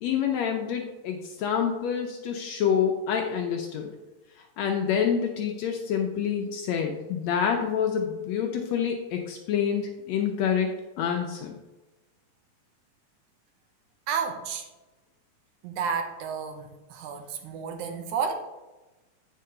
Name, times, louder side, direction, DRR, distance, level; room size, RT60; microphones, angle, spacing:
voice 1, 0.0-3.9 4.6-10.7 11.0-11.6, left 8 dB, 75° left, 3 dB, 1.7 m, -27 dB
voice 2, 14.1-14.7 15.6-18.3, right 6 dB, 75° right, 5 dB, 2.1 m, -31 dB
8.4 x 5.6 x 3.8 m, 1.1 s
omnidirectional pair, 3.6 m